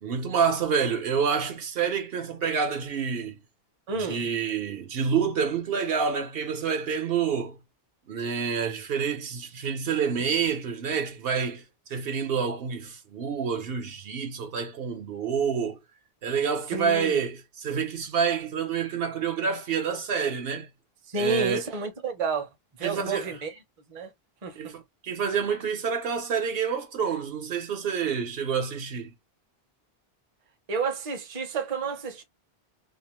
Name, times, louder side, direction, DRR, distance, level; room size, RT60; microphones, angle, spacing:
voice 1, 0.0-3.4 4.0-7.6 8.1-11.6 11.9-15.8 16.2-20.7 21.2-21.6 22.8-23.4 24.6-29.1, right 6 dB, 70° right, 0.9 m, -28 dB
voice 2, 3.9-4.2 16.7-17.2 21.1-22.5 22.8-23.5 23.9-24.1 24.4-24.7 30.7-32.2, right 4 dB, 40° right, 0.7 m, -30 dB
2.5 x 2.0 x 2.9 m
omnidirectional pair, 1.0 m